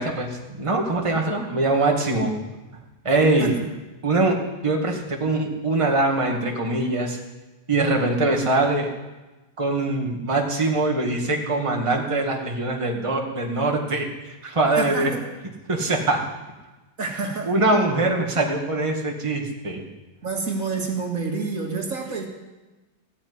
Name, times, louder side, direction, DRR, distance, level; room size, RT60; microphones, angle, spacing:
voice 1, 0.0-2.3 3.0-3.5 4.0-4.4 4.6-7.2 7.7-8.9 9.6-15.1 15.7-16.2 17.5-19.9, right 2 dB, 20° right, 1 dB, 2.0 m, -23 dB
voice 2, 14.8-15.3 16.0-16.1 17.0-17.5 20.2-22.3, right 4 dB, 55° right, 1 dB, 2.3 m, -28 dB
16.0 x 8.9 x 9.8 m, 1.1 s
omnidirectional pair, 1.8 m